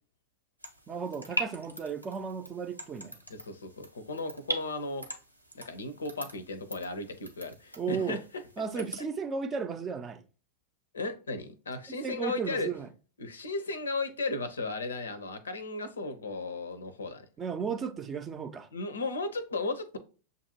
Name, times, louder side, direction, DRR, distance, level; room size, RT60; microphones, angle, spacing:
sound 1, 0.6-9.0, right 1 dB, 90° right, 0.7 m, -41 dB
voice 1, 0.9-3.2 7.8-8.2 8.6-10.2 11.9-12.9 17.4-18.7, right 6 dB, 25° right, 0.5 m, -34 dB
voice 2, 3.3-5.1 5.5-8.4 8.8-8.9 10.9-12.7 13.2-17.3 18.7-20.0, left 3 dB, 70° left, 0.6 m, -35 dB
6.9 x 2.6 x 2.8 m
figure-of-eight pair, 90°, 0 cm